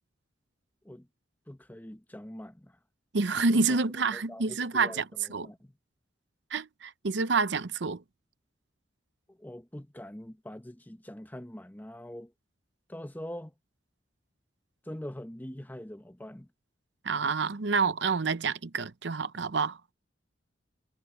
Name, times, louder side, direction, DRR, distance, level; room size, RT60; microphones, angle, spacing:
voice 1, 1.5-2.8 3.5-3.8 4.1-5.7 9.3-12.3 12.9-13.5 14.9-16.5, left 1 dB, 10° left, 0.9 m, -43 dB
voice 2, 3.1-5.5 6.5-8.0 17.0-19.9, right 4 dB, 70° right, 0.7 m, -28 dB
head